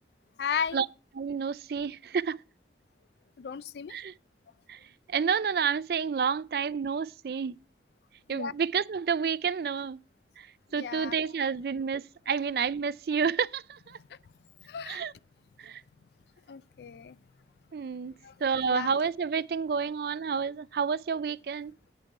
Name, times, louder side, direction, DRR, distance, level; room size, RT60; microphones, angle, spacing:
voice 1, 0.4-0.8 3.4-3.9 8.3-8.5 10.7-11.2 13.9-14.0 14.7-15.0 16.5-17.2 18.2-18.4 18.6-18.9, left 7 dB, 70° left, 0.4 m, -35 dB
voice 2, 1.2-2.4 3.9-4.1 4.7-4.8 5.1-7.5 8.3-10.0 10.4-10.5 10.7-14.0 14.9-15.1 15.6-15.8 17.7-18.1 18.4-21.7, right 6 dB, 60° right, 0.3 m, -29 dB
8.6 x 6.6 x 4.6 m
head